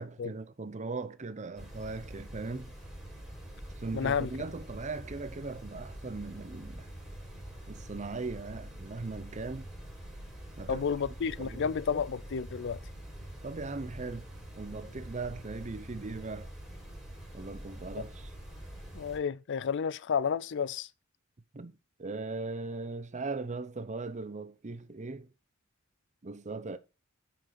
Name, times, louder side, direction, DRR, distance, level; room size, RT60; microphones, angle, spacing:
voice 1, 0.0-2.7 3.8-6.9 7.7-9.7 10.6-10.8 11.4-12.0 13.4-14.3 14.6-16.5 17.3-18.3 21.5-25.3 26.2-26.8, right 3 dB, 35° right, 0.7 m, -39 dB
sound 1, 1.6-19.2, right 1 dB, ahead, 4.9 m, -45 dB
voice 2, 3.9-4.3 10.7-12.8 18.9-20.9, left 6 dB, 60° left, 0.4 m, -31 dB
8.9 x 6.1 x 5.1 m
head